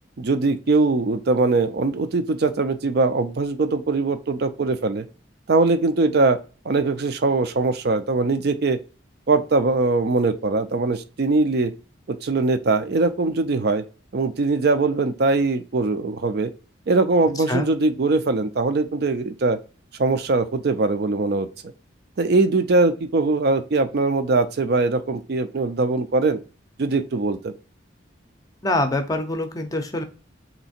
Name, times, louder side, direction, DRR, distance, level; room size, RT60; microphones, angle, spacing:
voice 1, 0.2-5.1 5.5-6.4 6.7-8.8 9.3-11.7 12.1-13.8 14.1-16.5 16.9-19.6 20.0-21.5 22.2-26.4 26.8-27.5, right 3 dB, 55° right, 9 dB, 0.4 m, -21 dB
voice 2, 17.4-17.7 28.6-30.0, left 1 dB, 20° left, 6 dB, 0.5 m, -24 dB
3.3 x 2.8 x 4.2 m, 0.34 s
head